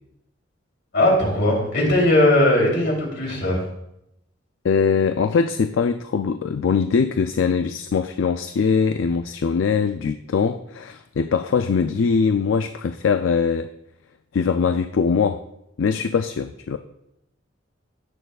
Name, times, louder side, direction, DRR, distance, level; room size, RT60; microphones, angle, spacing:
voice 1, 0.9-3.6, left 1 dB, 65° left, -1 dB, 3.2 m, -18 dB
voice 2, 4.6-13.7 14.3-15.4 15.8-16.8, left 5 dB, 85° left, 8 dB, 0.4 m, -22 dB
16.5 x 6.6 x 2.4 m, 0.82 s
head